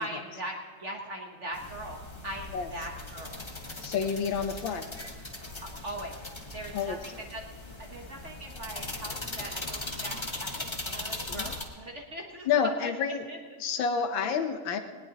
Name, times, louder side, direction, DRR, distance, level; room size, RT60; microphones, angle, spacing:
voice 1, 0.0-2.0 2.2-3.4 5.6-6.2 6.5-7.5 7.8-12.9 13.3-13.4, right 1 dB, 40° right, 1 dB, 1.2 m, -40 dB
sound 1, 1.5-11.6, left 2 dB, 20° left, 0.9 m, -39 dB
voice 2, 3.8-4.8 6.7-7.0 11.3-11.4 12.5-13.3 13.6-14.8, left 6 dB, 70° left, 7 dB, 1.6 m, -29 dB
19.0 x 19.0 x 2.9 m, 1.5 s
omnidirectional pair, 2.3 m